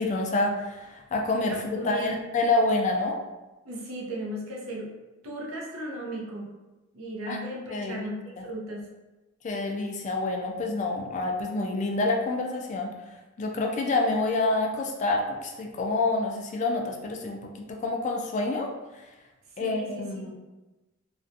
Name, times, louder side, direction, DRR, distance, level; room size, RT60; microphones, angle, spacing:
voice 1, 0.0-3.2 7.3-7.4 7.7-8.1 8.4-8.5 9.4-12.9 13.4-18.7 19.0-19.1 19.6-20.3, left 2 dB, 35° left, 1 dB, 0.3 m, -27 dB
voice 2, 1.5-2.2 3.6-4.9 5.2-6.5 6.9-8.9 19.6-20.3, right 1 dB, 75° right, -2 dB, 0.6 m, -36 dB
2.4 x 2.1 x 2.6 m, 1.1 s
head